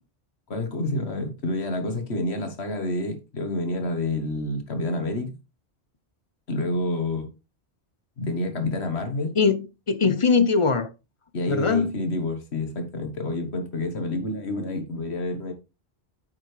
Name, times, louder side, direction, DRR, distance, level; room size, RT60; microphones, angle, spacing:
voice 1, 0.5-5.4 6.5-7.3 8.2-9.3 11.3-15.5, left 2 dB, 75° left, 1.7 m, -28 dB
voice 2, 9.4-10.9 11.5-11.9, left 5 dB, 35° left, 0.6 m, -21 dB
9.0 x 6.0 x 3.3 m
omnidirectional pair, 1.1 m